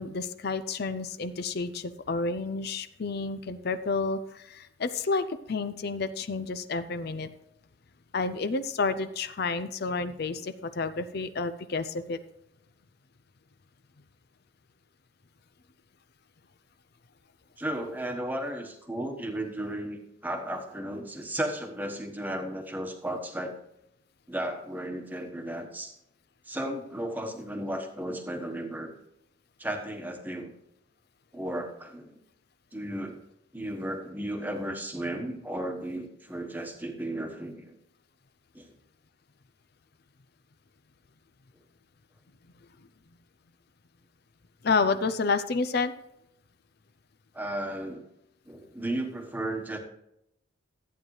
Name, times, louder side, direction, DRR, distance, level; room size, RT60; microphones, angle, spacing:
voice 1, 0.0-7.3 8.1-12.2 44.6-45.9, left 4 dB, 55° left, 11 dB, 0.6 m, -30 dB
voice 2, 17.6-23.5 24.3-25.9 26.5-28.9 29.6-30.5 31.3-32.2 32.7-33.2 33.5-37.8 38.5-38.7 47.3-48.0 48.5-49.8, right 1 dB, 10° right, 3 dB, 1.2 m, -34 dB
14.0 x 8.9 x 3.2 m, 0.81 s
head